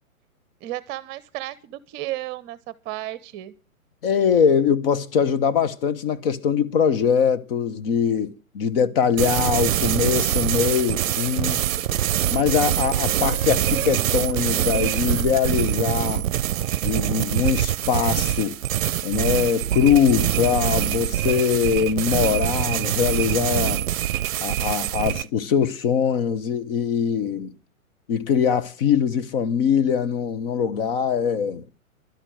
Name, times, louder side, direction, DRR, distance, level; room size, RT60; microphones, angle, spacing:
voice 1, 0.6-3.5, right 15 dB, 25° right, 0.9 m, -33 dB
voice 2, 4.0-11.6 12.3-16.3 16.8-18.6 19.0-23.8 24.4-27.5 28.1-31.6, left 7 dB, 40° left, 1.1 m, -22 dB
sound 1, 9.2-25.3, right 12 dB, 65° right, 0.6 m, -24 dB
12.0 x 9.9 x 7.8 m
hypercardioid pair, 125°, 42 cm